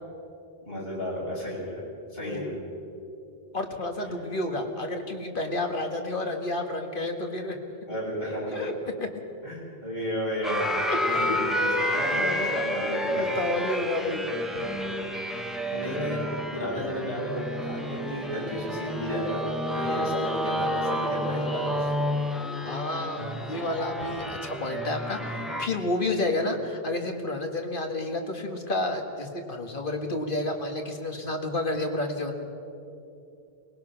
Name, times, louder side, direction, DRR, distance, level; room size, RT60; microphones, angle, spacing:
voice 1, 0.7-1.8 2.1-2.6 7.9-8.8 9.4-10.8 11.1-13.5 15.7-16.3 16.5-21.9, equal, 70° left, -5 dB, 7.0 m, -32 dB
voice 2, 2.2-2.5 3.5-7.6 8.5-8.7 10.9-11.4 12.0-12.6 13.0-14.5 22.7-32.5, left 2 dB, 55° left, 4 dB, 2.0 m, -30 dB
sound 1, 10.4-25.7, equal, ahead, 1.4 m, -30 dB
22.5 x 20.5 x 5.9 m, 2.7 s
omnidirectional pair, 1.0 m